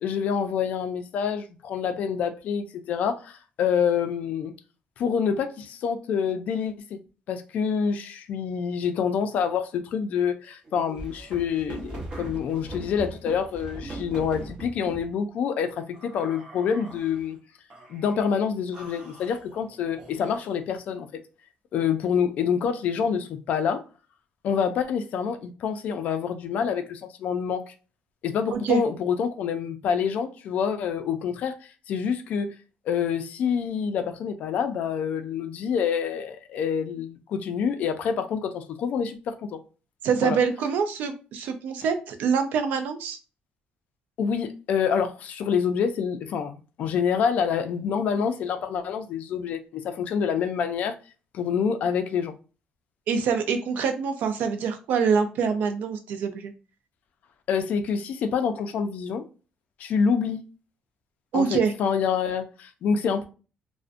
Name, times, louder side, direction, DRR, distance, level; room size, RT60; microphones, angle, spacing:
voice 1, 0.0-4.5 5.0-7.0 7.3-17.4 17.9-21.1 21.7-23.8 24.4-27.7 28.2-32.5 32.9-39.6 40.2-40.4 44.2-51.0 51.3-52.3 57.5-59.2 59.8-60.4 61.3-63.3, left 7 dB, 55° left, 0.3 m, -27 dB
sound 1, 10.7-15.1 15.9-17.2 17.7-18.3 18.7-20.6, right 2 dB, 30° right, 0.8 m, -41 dB
voice 2, 28.5-28.8 40.0-43.2 53.1-56.5 61.3-61.7, right 6 dB, 70° right, 0.4 m, -25 dB
2.5 x 2.1 x 2.5 m
cardioid pair, 175°, 3 cm